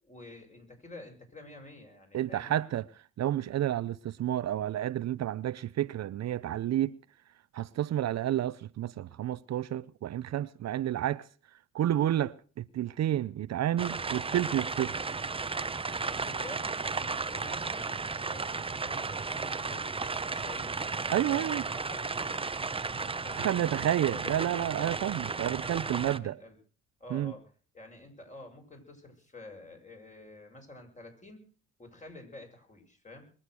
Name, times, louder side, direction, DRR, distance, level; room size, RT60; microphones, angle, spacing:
voice 1, 0.0-2.6 16.1-19.9 20.3-22.5 22.8-24.9 25.6-26.6 27.0-31.4 31.8-33.3, left 2 dB, 25° left, 7.1 m, -49 dB
voice 2, 2.1-2.8 3.2-6.9 7.5-11.2 11.7-14.9 21.1-21.6 23.4-26.3 27.1-27.3, right 12 dB, 60° right, 0.7 m, -30 dB
sound 1, 13.8-26.2, right 4 dB, 20° right, 0.8 m, -34 dB
22.5 x 8.8 x 6.3 m
cardioid pair, 90°, 30 cm